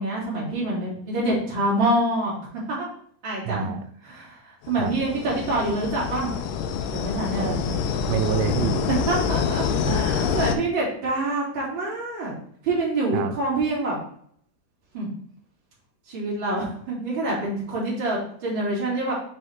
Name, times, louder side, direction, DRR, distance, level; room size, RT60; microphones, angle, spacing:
voice 1, 0.0-2.3 2.7-2.9 3.2-3.7 4.0-6.3 6.9-7.6 8.8-12.3 12.6-14.0 14.9-15.1 16.1-19.1, right 2 dB, 35° right, -6 dB, 3.0 m, -26 dB
voice 2, 3.5-3.8 4.8-4.9 7.4-8.8 13.1-13.3, right 8 dB, 90° right, 9 dB, 2.4 m, -27 dB
sound 1, 4.7-10.6, left 7 dB, 80° left, 2.1 m, -26 dB
6.3 x 4.5 x 3.6 m, 0.63 s
omnidirectional pair, 4.1 m